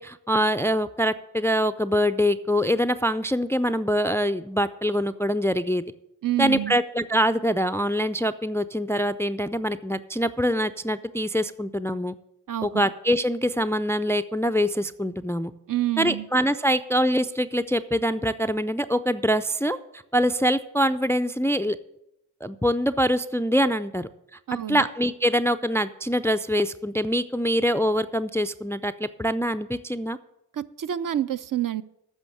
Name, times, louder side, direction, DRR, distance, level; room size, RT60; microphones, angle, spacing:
voice 1, 0.0-5.8 6.4-12.1 12.6-15.5 16.0-21.8 22.4-24.1 24.7-30.2, equal, 5° left, 12 dB, 0.4 m, -24 dB
voice 2, 6.2-6.8 12.5-12.8 15.7-16.3 24.5-24.9 30.5-31.8, right 12 dB, 45° right, 13 dB, 0.6 m, -28 dB
9.1 x 6.2 x 8.4 m, 0.83 s
supercardioid pair, 45°, 45 cm